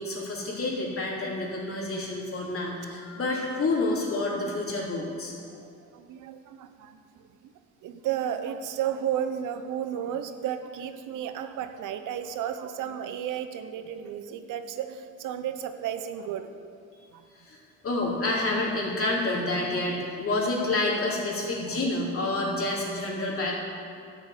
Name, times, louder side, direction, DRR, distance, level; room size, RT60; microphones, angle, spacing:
voice 1, 0.0-5.3 16.9-17.1 17.4-17.6 17.8-23.5, left 2 dB, 45° left, -3 dB, 3.3 m, -28 dB
voice 2, 5.4-7.5 7.8-16.6 17.1-17.2 19.9-20.1 21.7-21.8, right 9 dB, 90° right, 9 dB, 0.8 m, -33 dB
11.5 x 6.8 x 8.2 m, 2.4 s
cardioid pair, 90°, 30 cm